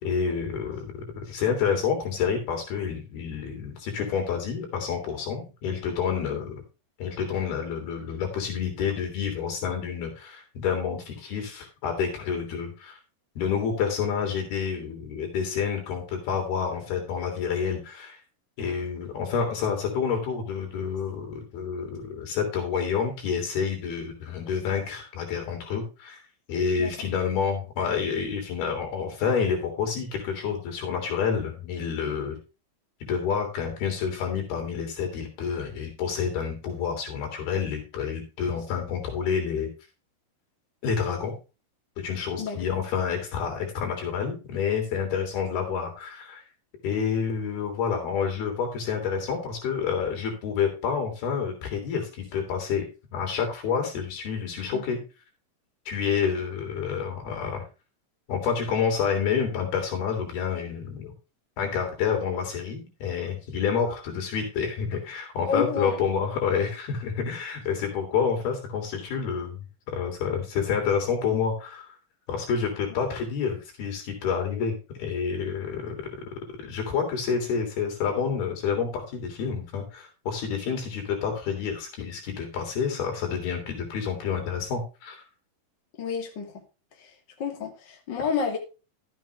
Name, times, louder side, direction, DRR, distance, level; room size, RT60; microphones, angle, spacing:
voice 1, 0.0-6.6 7.0-13.0 13.4-18.2 18.6-26.2 26.5-32.4 33.0-39.7 40.8-41.3 42.0-46.4 46.8-52.8 53.1-55.0 55.9-57.6 58.3-61.1 61.6-71.9 72.3-76.0 76.6-85.2, left 6 dB, 85° left, 3 dB, 5.3 m, -28 dB
voice 2, 65.5-66.0 67.2-67.3 86.0-86.5 87.4-88.6, left 6 dB, 30° left, 2 dB, 2.9 m, -29 dB
12.5 x 8.6 x 3.4 m, 0.31 s
omnidirectional pair, 4.3 m